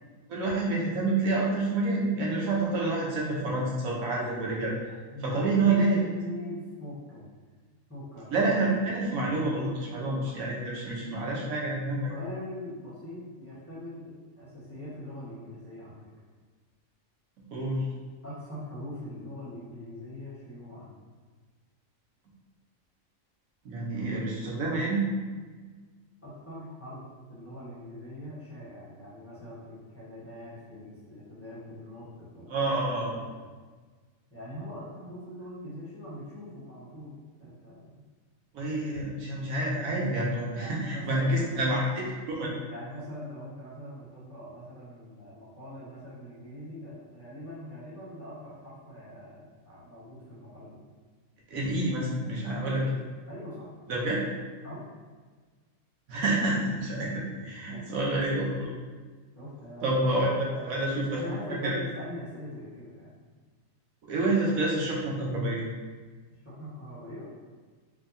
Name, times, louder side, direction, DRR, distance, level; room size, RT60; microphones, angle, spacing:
voice 1, 0.3-4.7 5.2-6.0 8.3-12.1 17.5-17.9 23.6-25.1 32.5-33.1 38.5-42.5 51.5-52.8 53.9-54.2 56.1-58.7 59.8-61.2 61.6-61.7 64.0-65.6, right 2 dB, 80° right, -4 dB, 1.3 m, -28 dB
voice 2, 5.1-7.2 7.9-8.3 9.6-9.8 12.1-16.1 18.2-21.1 26.2-27.0 27.3-33.4 34.3-38.0 40.5-41.8 42.7-50.8 52.6-53.0 53.3-53.7 54.6-54.9 57.3-57.4 57.7-57.9 59.3-63.2 66.4-67.3, left 1 dB, 10° left, -10 dB, 0.9 m, -42 dB
4.5 x 2.8 x 2.7 m, 1.4 s
omnidirectional pair, 1.4 m